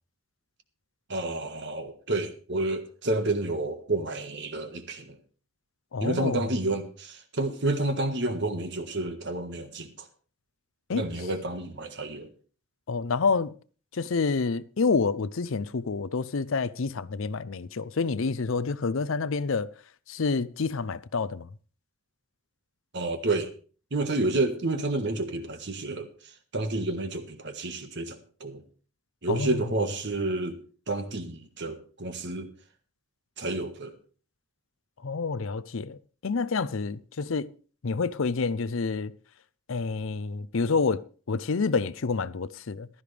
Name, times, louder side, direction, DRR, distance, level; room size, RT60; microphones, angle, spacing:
voice 1, 1.1-5.2 6.0-9.9 10.9-12.3 22.9-23.5 23.9-26.1 26.5-28.6 29.2-30.6 30.9-32.5 33.4-33.9, right 2 dB, 55° right, 1.5 m, -30 dB
voice 2, 5.9-6.5 10.9-11.1 12.9-13.5 13.9-19.7 20.1-21.5 29.3-29.6 35.0-37.5 37.8-39.1 39.7-42.9, left 4 dB, 65° left, 0.6 m, -28 dB
15.0 x 12.5 x 3.4 m
head